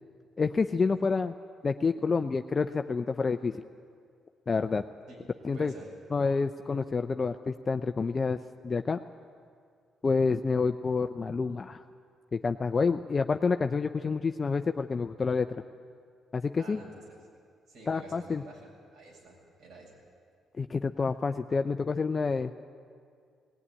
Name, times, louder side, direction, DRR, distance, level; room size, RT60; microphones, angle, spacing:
voice 1, 0.4-1.3 1.6-3.6 4.5-4.8 5.4-5.7 6.1-8.4 8.6-9.0 10.0-11.8 12.3-15.5 16.3-16.8 17.9-18.4 20.6-22.5, left 4 dB, 35° left, 8 dB, 0.6 m, -28 dB
voice 2, 5.5-5.9 16.6-17.2 17.7-19.9, right 2 dB, 75° right, -2 dB, 7.6 m, -49 dB
18.0 x 18.0 x 9.9 m, 2.2 s
cardioid pair, 90°, 0 cm